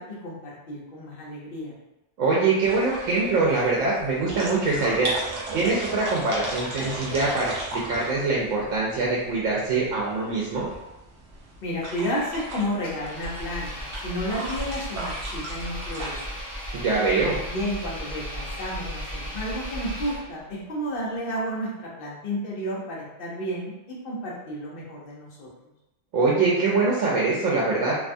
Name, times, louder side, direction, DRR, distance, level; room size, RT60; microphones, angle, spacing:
voice 1, 0.0-1.7 11.6-16.4 17.4-23.7 24.0-25.5, equal, 55° left, -4 dB, 0.9 m, -32 dB
voice 2, 2.2-5.1 5.5-10.6 16.7-17.4 26.1-28.0, right 3 dB, 90° right, -5 dB, 1.0 m, -23 dB
sound 1, 2.6-16.2, right 2 dB, 65° right, 0.9 m, -37 dB
Engine, 12.8-20.5, equal, 20° left, 0.8 m, -35 dB
2.7 x 2.2 x 2.5 m, 0.97 s
omnidirectional pair, 1.3 m